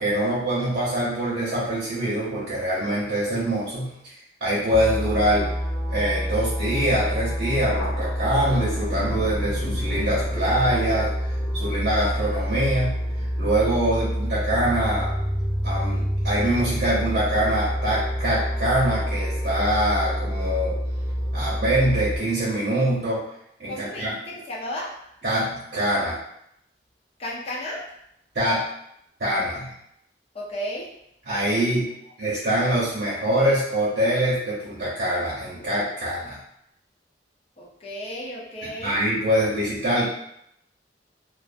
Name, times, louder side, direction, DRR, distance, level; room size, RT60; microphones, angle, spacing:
voice 1, 0.0-4.1 4.4-5.5 5.9-13.0 13.4-15.1 15.6-20.8 21.3-23.2 23.6-24.1 25.2-26.2 28.3-28.7 29.2-29.7 31.3-31.9 32.2-36.4 38.8-40.1, right 1 dB, 65° right, -11 dB, 0.8 m, -24 dB
sound 1, 4.7-22.2, equal, 10° right, 0.8 m, -27 dB
Thunder, 7.6-14.7, left 2 dB, 85° left, 0.4 m, -39 dB
voice 2, 23.7-24.9 27.2-27.8 30.3-30.9 37.6-39.0, equal, 35° left, -5 dB, 0.6 m, -33 dB
2.5 x 2.0 x 2.5 m, 0.76 s
head